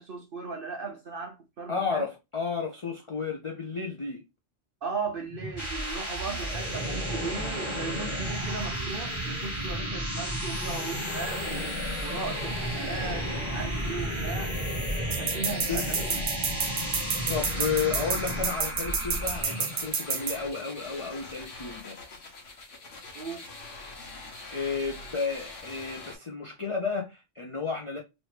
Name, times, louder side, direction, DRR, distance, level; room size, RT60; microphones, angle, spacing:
voice 1, 0.0-2.0 4.8-11.7 12.0-14.6 15.2-16.2 23.1-23.5, right 4 dB, 55° right, 0.7 m, -37 dB
voice 2, 1.7-4.2 6.3-6.4 9.7-10.0 15.5-15.9 16.8-17.0 17.3-22.0 24.5-28.0, left 5 dB, 45° left, 0.4 m, -32 dB
sound 1, 5.3-19.8, equal, 25° left, 1.3 m, -32 dB
sound 2, 10.5-26.2, left 3 dB, 75° left, 1.3 m, -44 dB
sound 3, 15.1-20.4, right 5 dB, 75° right, 1.1 m, -29 dB
3.1 x 2.7 x 3.1 m
omnidirectional pair, 1.3 m